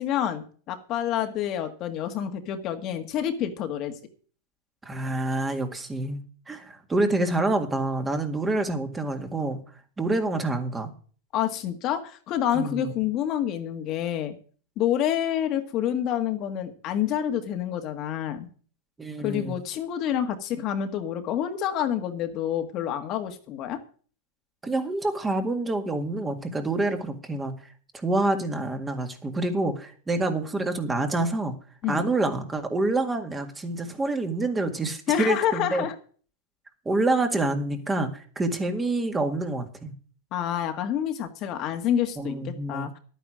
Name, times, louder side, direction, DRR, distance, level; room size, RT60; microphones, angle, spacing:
voice 1, 0.0-4.0 11.3-14.3 14.8-18.5 19.2-23.8 31.8-32.1 35.1-35.9 40.3-43.0, left 10 dB, 40° left, 6 dB, 1.7 m, -28 dB
voice 2, 4.8-6.2 6.5-9.6 10.0-10.9 12.5-12.9 19.0-19.6 24.6-27.5 27.9-31.5 31.9-35.9 36.9-39.9 42.2-42.9, right 2 dB, 15° right, 6 dB, 1.9 m, -27 dB
11.0 x 9.3 x 6.3 m, 0.42 s
hypercardioid pair, 125°, 0 cm